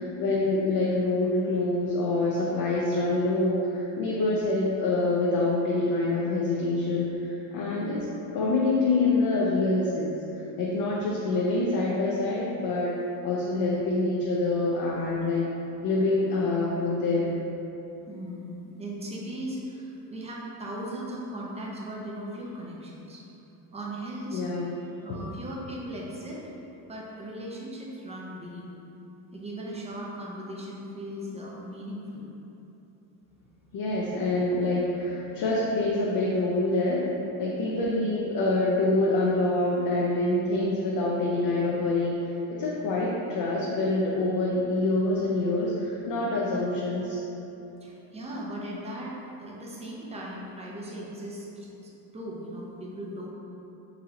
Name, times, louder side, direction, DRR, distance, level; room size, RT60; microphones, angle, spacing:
voice 1, 0.0-8.0 8.3-10.2 10.6-13.0 13.2-15.5 15.8-17.4 24.3-24.8 25.1-25.2 33.7-37.0 37.4-42.2 42.6-47.2, left 2 dB, 55° left, -5 dB, 0.6 m, -26 dB
voice 2, 7.7-8.0 18.1-23.2 23.7-24.4 25.0-26.4 26.9-28.7 29.3-32.2 37.7-37.9 42.7-43.0 47.8-49.1 49.4-53.3, right 1 dB, 15° right, -4 dB, 0.5 m, -38 dB
4.0 x 2.8 x 2.8 m, 3.0 s
cardioid pair, 120°, 42 cm